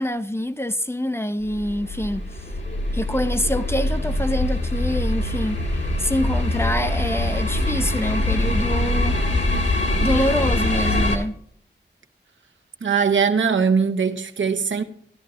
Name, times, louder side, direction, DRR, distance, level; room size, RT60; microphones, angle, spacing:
voice 1, 0.0-2.3 2.9-9.2 10.0-11.3, left 1 dB, 15° left, 0.5 m, -25 dB
sound 1, 1.4-11.2, left 1 dB, 75° left, 1.8 m, -23 dB
voice 2, 12.8-14.8, right 6 dB, 80° right, 0.8 m, -20 dB
12.5 x 12.0 x 2.9 m
wide cardioid pair, 80°, 19 cm